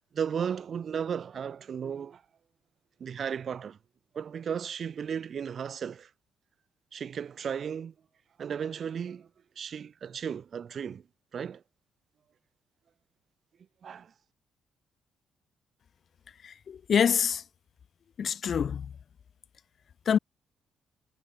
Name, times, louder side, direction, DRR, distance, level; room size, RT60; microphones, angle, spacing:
voice 1, 0.1-2.2 3.0-3.8 4.1-6.1 6.9-7.9 8.4-9.3 9.6-11.0 11.3-11.6 13.8-14.1, right 7 dB, 55° right, 0.5 m, -35 dB
voice 2, 16.4-17.4 18.2-18.9 20.0-20.2, left 7 dB, 55° left, 1.6 m, -26 dB
cardioid pair, 90°, 0 cm